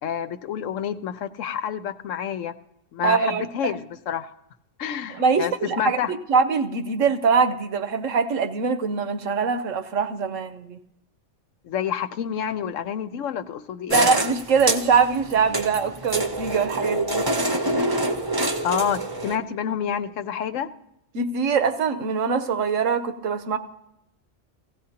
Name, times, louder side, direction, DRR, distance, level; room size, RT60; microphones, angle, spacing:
voice 1, 0.0-2.5 2.9-3.8 4.1-4.3 4.8-6.1 11.6-14.1 18.6-20.7, left 8 dB, 85° left, 11 dB, 1.1 m, -28 dB
voice 2, 3.0-3.7 5.1-10.8 13.9-17.2 21.1-23.6, right 5 dB, 85° right, 8 dB, 1.2 m, -23 dB
sound 1, 13.9-19.4, right 1 dB, 25° right, 0.6 m, -26 dB
16.5 x 16.0 x 2.9 m, 0.83 s
omnidirectional pair, 1.3 m